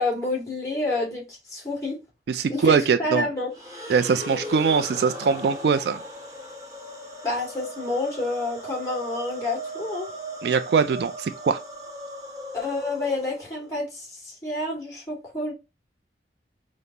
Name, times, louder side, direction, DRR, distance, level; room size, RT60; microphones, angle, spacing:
voice 1, 0.0-2.0 2.5-3.5 7.2-10.1 12.5-15.5, left 2 dB, 15° left, 1.8 m, -29 dB
voice 2, 2.3-3.3 3.9-6.0 10.4-11.6, right 5 dB, 65° right, 0.3 m, -22 dB
sound 1, 3.5-13.7, right 1 dB, 20° right, 0.8 m, -38 dB
5.0 x 2.0 x 2.7 m
head